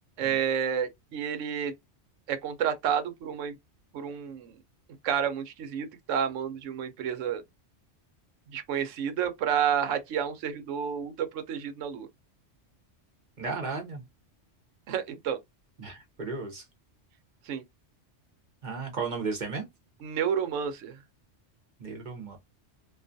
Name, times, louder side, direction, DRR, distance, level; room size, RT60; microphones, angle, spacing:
voice 1, 0.2-1.7 2.3-3.6 3.9-4.5 5.0-7.4 8.5-12.1 14.9-15.4 17.5-17.6 20.0-21.0, right 8 dB, 85° right, 1.0 m, -30 dB
voice 2, 13.4-14.0 15.8-16.6 18.6-19.6 21.8-22.4, right 4 dB, 45° right, 0.7 m, -34 dB
2.4 x 2.3 x 2.5 m
omnidirectional pair, 1.3 m